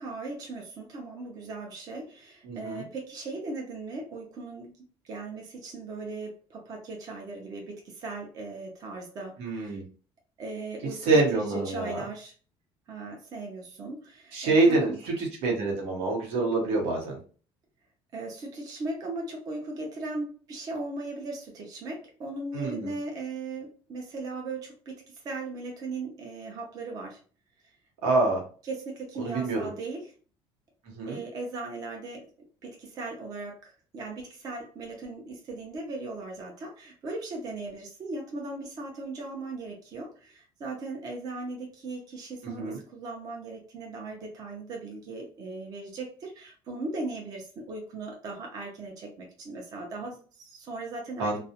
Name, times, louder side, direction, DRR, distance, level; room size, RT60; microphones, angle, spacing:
voice 1, 0.0-9.8 10.4-12.3 12.9-15.0 18.1-27.2 28.6-30.1 31.1-32.3 32.6-51.4, right 3 dB, 40° right, 0 dB, 0.5 m, -38 dB
voice 2, 2.4-2.8 9.4-9.8 11.1-12.0 14.3-17.2 22.5-22.9 28.0-28.4 29.2-29.7 31.0-31.2 42.4-42.8 51.2-51.4, right 3 dB, 85° right, 0 dB, 1.0 m, -26 dB
2.4 x 2.0 x 2.7 m, 0.40 s
cardioid pair, 170°, 10 cm